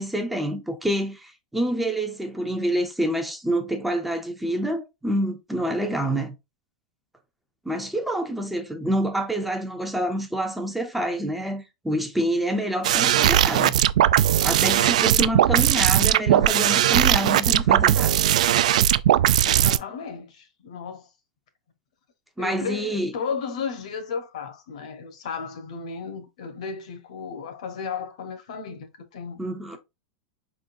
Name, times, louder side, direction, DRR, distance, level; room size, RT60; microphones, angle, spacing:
voice 1, 0.0-6.3 7.7-13.8 14.4-18.1 22.4-23.1 29.4-29.8, right 1 dB, 5° right, 0.5 m, -27 dB
sound 1, 12.8-19.8, right 11 dB, 90° right, 0.3 m, -19 dB
voice 2, 19.4-21.1 22.4-29.4, left 6 dB, 70° left, 1.2 m, -34 dB
5.2 x 3.7 x 2.6 m
supercardioid pair, 175°, 4 cm